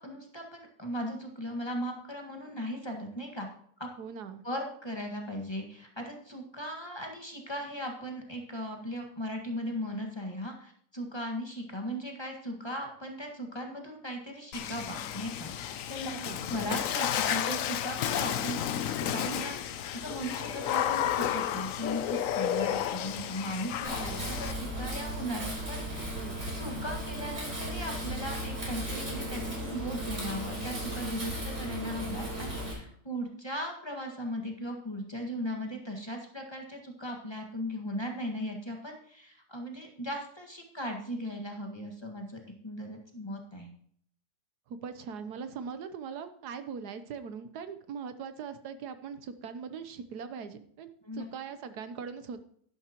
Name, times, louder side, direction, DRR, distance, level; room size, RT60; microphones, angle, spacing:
voice 1, 0.0-3.5 3.8-3.9 4.4-16.1 16.5-24.1 24.4-26.2 26.5-43.7 51.0-51.2, equal, 15° left, 1 dB, 1.7 m, -38 dB
voice 2, 4.0-4.4 16.1-16.4 23.9-24.3 26.1-26.4 44.7-52.4, right 6 dB, 80° right, 10 dB, 1.4 m, -41 dB
Water / Splash splatter, 14.5-24.5, left 10 dB, 65° left, 0.9 m, -32 dB
Wind, 23.8-32.7, right 1 dB, 45° right, 4.4 m, -36 dB
11.5 x 11.0 x 3.0 m, 0.64 s
omnidirectional pair, 1.7 m